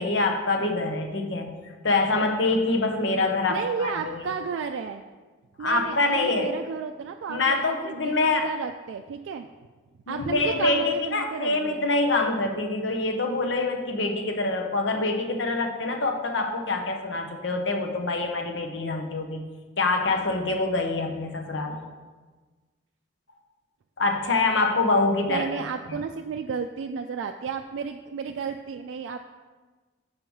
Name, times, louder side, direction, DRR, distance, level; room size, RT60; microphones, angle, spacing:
voice 1, 0.0-1.5 1.8-4.2 5.6-6.6 7.3-8.5 10.1-19.4 19.8-21.8 24.0-25.5 25.9-26.0, left 3 dB, 75° left, 4 dB, 0.8 m, -25 dB
voice 2, 3.5-5.0 5.6-9.5 10.1-11.9 25.3-29.2, right 6 dB, 85° right, 5 dB, 0.3 m, -32 dB
5.6 x 4.6 x 5.4 m, 1.3 s
head